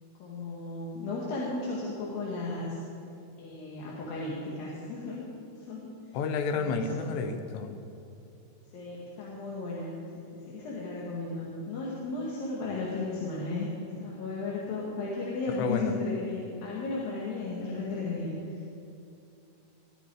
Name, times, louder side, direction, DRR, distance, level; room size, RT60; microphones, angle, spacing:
voice 1, 0.2-2.8 3.4-5.3 5.6-6.2 6.5-7.2 8.7-13.7 14.0-18.5, left 3 dB, 60° left, -5 dB, 3.5 m, -35 dB
voice 2, 6.1-7.8 15.6-15.9, left 4 dB, 85° left, 7 dB, 3.2 m, -30 dB
21.0 x 13.0 x 4.8 m, 2.6 s
omnidirectional pair, 4.9 m